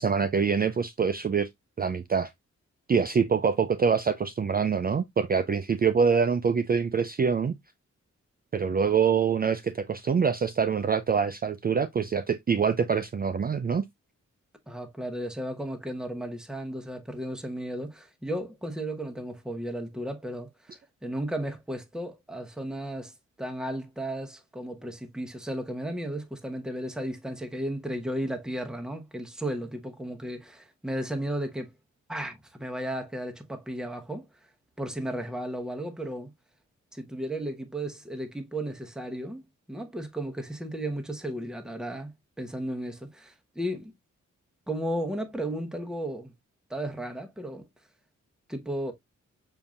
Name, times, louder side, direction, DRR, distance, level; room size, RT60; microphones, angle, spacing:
voice 1, 0.0-1.5 1.8-2.3 2.9-7.6 8.5-13.8, right 6 dB, 30° right, 0.4 m, -25 dB
voice 2, 14.7-23.1 23.4-31.7 32.1-34.3 34.8-36.3 36.9-39.4 39.7-43.9 44.7-46.3 46.7-47.7 48.5-48.9, right 1 dB, ahead, 1.0 m, -34 dB
6.9 x 2.7 x 2.3 m
cardioid pair, 60°, 30 cm